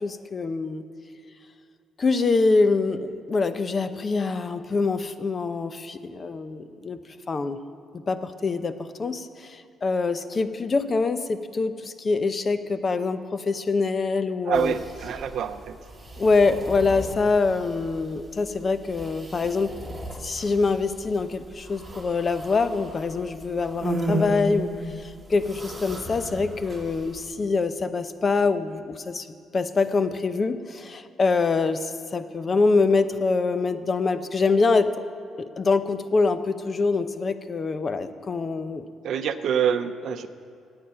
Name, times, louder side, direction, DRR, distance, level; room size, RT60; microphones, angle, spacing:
voice 1, 0.0-0.8 2.0-7.0 7.3-7.6 8.1-14.7 16.2-19.7 20.2-24.7 25.0-29.3 29.5-34.9 35.6-38.8, left 4 dB, 40° left, 11 dB, 0.7 m, -24 dB
voice 2, 14.4-15.8 39.0-40.3, right 8 dB, 70° right, 10 dB, 0.6 m, -26 dB
sound 1, 14.5-27.3, right 1 dB, 5° right, 2.5 m, -36 dB
16.5 x 8.9 x 5.6 m, 2.2 s
cardioid pair, 90°, 0 cm